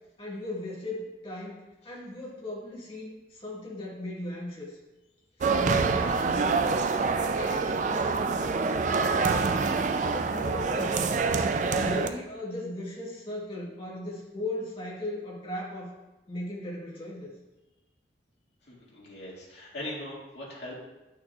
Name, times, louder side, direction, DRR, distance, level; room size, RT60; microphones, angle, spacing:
voice 1, 0.2-4.8 5.4-6.6 7.2-8.5 9.0-11.2 11.6-15.9 16.3-17.3, left 1 dB, 30° left, -6 dB, 1.7 m, -37 dB
sound 1, 5.4-12.1, right 4 dB, 45° right, 0.4 m, -26 dB
voice 2, 18.6-20.7, left 1 dB, 75° left, -5 dB, 2.1 m, -40 dB
9.4 x 6.4 x 2.4 m, 1.0 s
head